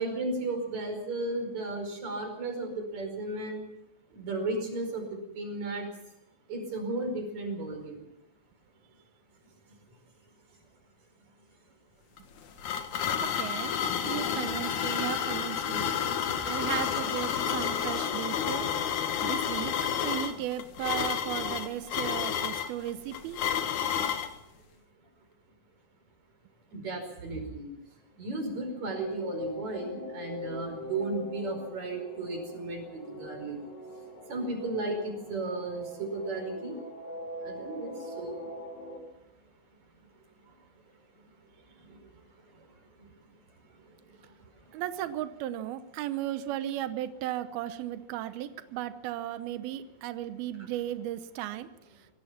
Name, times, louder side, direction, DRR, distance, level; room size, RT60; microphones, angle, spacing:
voice 1, 0.0-3.6 4.1-5.1 5.4-5.9 6.5-8.0 26.7-27.7 28.2-33.6 34.3-36.8 37.5-38.4, right 2 dB, 35° right, 5 dB, 5.8 m, -34 dB
sound 1, 12.2-24.3, left 8 dB, 75° left, 1.8 m, -30 dB
voice 2, 13.2-13.8 14.0-16.0 16.4-18.7 19.2-19.7 20.0-23.4 44.7-51.7, right 12 dB, 90° right, 11 dB, 2.1 m, -35 dB
sound 2, 28.3-39.0, left 1 dB, 50° left, 4.9 m, -43 dB
26.0 x 18.0 x 5.9 m, 0.89 s
omnidirectional pair, 5.7 m